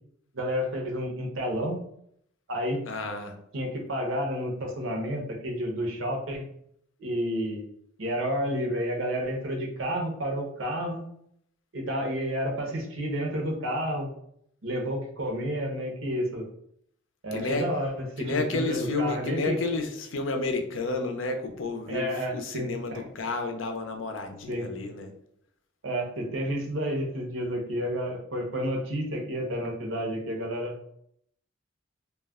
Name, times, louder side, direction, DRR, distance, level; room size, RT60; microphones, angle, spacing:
voice 1, 0.3-1.8 2.5-2.8 3.5-6.4 7.0-7.7 8.0-11.0 11.7-14.1 14.6-16.4 17.2-17.9 18.3-19.6 21.9-23.0 24.5-24.7 25.8-30.7, equal, 90° right, 1 dB, 0.8 m, -30 dB
voice 2, 2.9-3.4 17.3-17.6 18.2-25.1, left 3 dB, 80° left, 5 dB, 0.5 m, -31 dB
2.3 x 2.1 x 3.5 m, 0.69 s
head